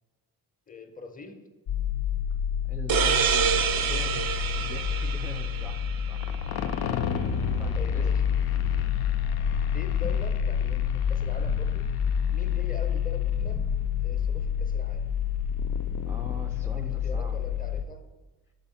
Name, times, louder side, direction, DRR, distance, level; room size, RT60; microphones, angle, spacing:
voice 1, 0.7-1.4 7.8-8.2 9.7-11.9 12.3-13.7 14.0-15.1 16.6-18.0, left 3 dB, 20° left, 6 dB, 0.7 m, -42 dB
sound 1, 1.7-17.8, left 8 dB, 75° left, 0.5 m, -28 dB
voice 2, 2.7-4.2 4.6-6.2 7.6-8.1 16.1-17.4, right 1 dB, 5° right, 2 dB, 0.4 m, -43 dB
sound 2, 2.9-6.3, right 7 dB, 60° right, 0.5 m, -27 dB
Thunder, 4.1-17.5, right 2 dB, 85° right, 0.8 m, -44 dB
5.3 x 4.1 x 5.6 m, 1.2 s
cardioid pair, 105°, 39 cm